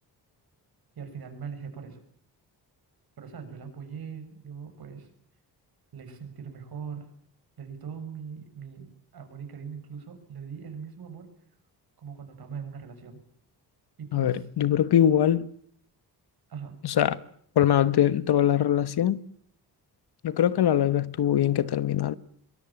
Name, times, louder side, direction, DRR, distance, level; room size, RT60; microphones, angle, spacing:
voice 1, 0.9-2.0 3.2-5.1 5.9-7.1 7.6-11.3 12.0-13.2 14.0-14.5 16.5-16.8, right 6 dB, 60° right, 6.9 m, -40 dB
voice 2, 14.1-15.5 16.8-17.2 17.5-19.2 20.2-22.1, left 10 dB, 70° left, 1.3 m, -22 dB
23.5 x 21.0 x 8.9 m
wide cardioid pair, 135°, 40 cm